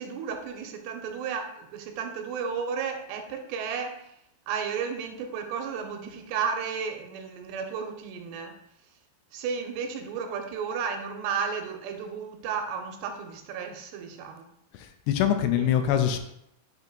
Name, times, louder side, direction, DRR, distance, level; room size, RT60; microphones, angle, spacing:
voice 1, 0.0-4.0 4.5-8.5 9.3-14.5 15.6-15.7, right 6 dB, 90° right, 4 dB, 2.8 m, -33 dB
voice 2, 14.7-16.2, left 10 dB, 80° left, 7 dB, 2.6 m, -24 dB
8.2 x 2.8 x 5.2 m, 0.77 s
omnidirectional pair, 4.9 m